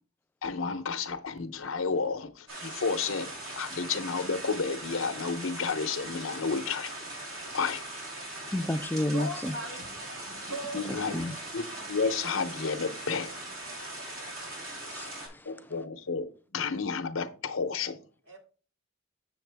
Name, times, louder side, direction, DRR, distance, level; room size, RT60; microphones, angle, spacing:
voice 1, 0.4-3.3 3.6-6.9 7.5-7.8 10.3-11.2 11.5-13.3 15.4-18.0, left 5 dB, 90° left, 0.8 m, -31 dB
sound 1, 2.5-15.3, right 2 dB, 90° right, 3.9 m, -40 dB
voice 2, 8.5-9.5 11.1-11.4 14.5-15.7, left 1 dB, 10° left, 0.4 m, -32 dB
voice 3, 9.1-10.1 10.5-11.2 18.3-18.4, right 1 dB, 75° right, 2.2 m, -39 dB
7.2 x 7.1 x 3.4 m
head